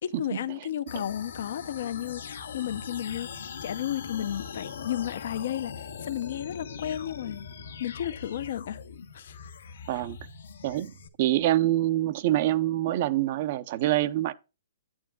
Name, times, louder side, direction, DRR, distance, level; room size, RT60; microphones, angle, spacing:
voice 1, 0.0-7.4 7.8-8.8 9.1-9.4, left 11 dB, 60° left, 0.7 m, -33 dB
sound 1, 0.9-11.1, left 6 dB, 85° left, 1.5 m, -41 dB
voice 2, 10.6-14.3, right 14 dB, 45° right, 0.6 m, -25 dB
9.6 x 8.7 x 2.3 m
hypercardioid pair, 150°, 0 cm